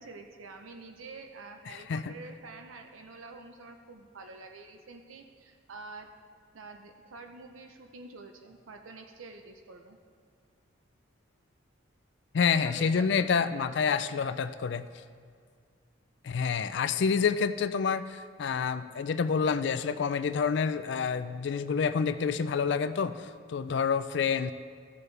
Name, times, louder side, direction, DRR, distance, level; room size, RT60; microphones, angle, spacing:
voice 1, 0.0-6.1 6.5-10.0 12.5-13.7, right 3 dB, 85° right, 5 dB, 0.6 m, -47 dB
voice 2, 1.7-2.1 12.3-14.9 16.2-24.5, left 6 dB, 60° left, 12 dB, 0.3 m, -28 dB
15.0 x 6.9 x 3.3 m, 2.1 s
head